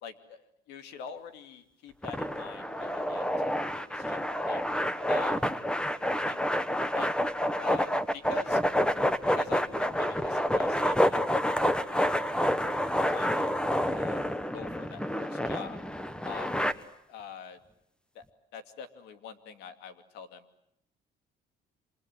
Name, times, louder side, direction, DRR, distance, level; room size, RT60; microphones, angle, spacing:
voice 1, 0.0-4.6 5.1-5.4 6.1-6.4 6.9-7.2 7.5-8.6 9.3-11.4 11.9-12.2 12.8-13.5 13.9-14.2 14.5-15.8 16.2-16.6 17.1-17.6 18.1-18.2 18.5-20.4, left 6 dB, 85° left, 8 dB, 2.6 m, -45 dB
sound 1, 2.0-16.7, equal, 5° left, 1.3 m, -28 dB
28.0 x 26.0 x 8.0 m, 0.78 s
cardioid pair, 110°, 17 cm